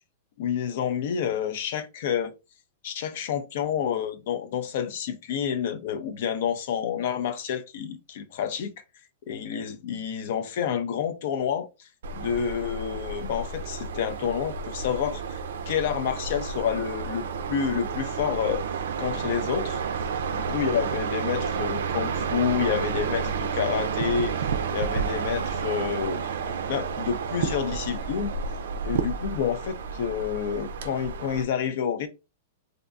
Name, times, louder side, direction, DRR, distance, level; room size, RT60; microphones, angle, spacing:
voice 1, 0.4-2.3 2.8-8.7 9.3-15.4 15.7-18.6 19.0-19.8 20.4-24.3 24.7-28.3 28.8-32.1, left 8 dB, 65° left, 0.4 m, -29 dB
sound 1, 12.0-31.4, right 6 dB, 75° right, 0.4 m, -31 dB
2.5 x 2.1 x 2.4 m
hypercardioid pair, 120°, 0 cm